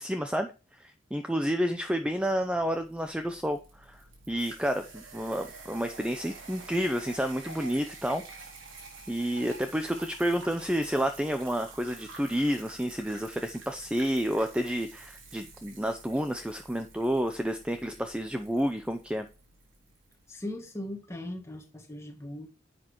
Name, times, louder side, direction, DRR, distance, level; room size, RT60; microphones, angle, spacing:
voice 1, 0.0-4.0 4.3-8.2 9.1-19.3, equal, 5° right, 0.6 m, -30 dB
sound 1, 2.2-20.2, right 3 dB, 85° right, 4.2 m, -49 dB
voice 2, 20.3-22.5, left 1 dB, 15° left, 1.9 m, -39 dB
10.5 x 7.6 x 3.0 m
head